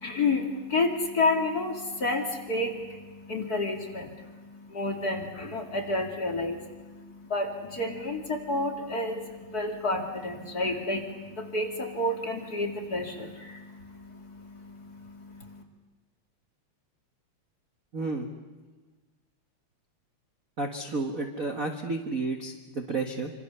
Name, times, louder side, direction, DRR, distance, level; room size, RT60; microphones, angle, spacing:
voice 1, 0.0-15.6, left 2 dB, 35° left, 2 dB, 2.4 m, -30 dB
voice 2, 17.9-18.3 20.6-23.3, right 3 dB, 40° right, 3 dB, 1.4 m, -31 dB
27.0 x 26.0 x 6.8 m, 1.3 s
omnidirectional pair, 3.4 m